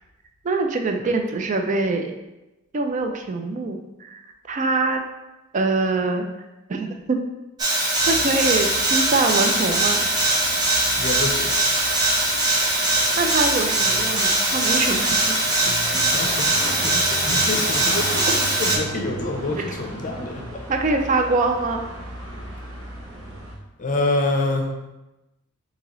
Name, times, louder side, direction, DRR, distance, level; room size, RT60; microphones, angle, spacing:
voice 1, 0.4-2.1 2.7-4.2 4.5-5.1 5.5-6.3 6.7-7.2 8.1-10.0 13.2-15.4 15.6-15.7 19.6-19.7 20.7-21.9, right 3 dB, 35° right, 5 dB, 0.4 m, -24 dB
sound 1, 7.6-18.8, right 1 dB, 20° right, 0.8 m, -21 dB
sound 2, 8.0-23.5, right 1 dB, 70° right, 0.9 m, -37 dB
voice 2, 11.0-11.6 15.9-20.6 23.8-24.7, left 2 dB, 40° left, 2 dB, 0.5 m, -27 dB
3.9 x 2.8 x 3.0 m, 1.0 s
head